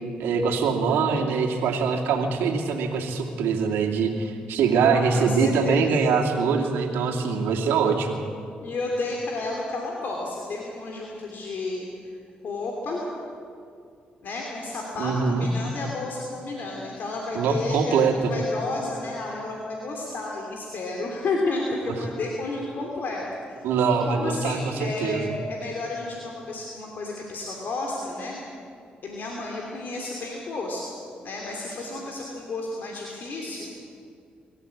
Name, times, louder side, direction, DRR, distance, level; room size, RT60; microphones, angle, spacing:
voice 1, 0.2-8.2 15.0-15.5 17.3-18.1 23.6-25.3, right 5 dB, 90° right, 2 dB, 2.4 m, -23 dB
voice 2, 4.9-5.9 8.6-12.2 12.4-13.1 14.2-23.2 23.8-28.4 29.0-30.9 31.2-33.7, left 2 dB, 65° left, -1 dB, 3.1 m, -32 dB
24.5 x 14.0 x 8.5 m, 2.4 s
supercardioid pair, 60°, 4 cm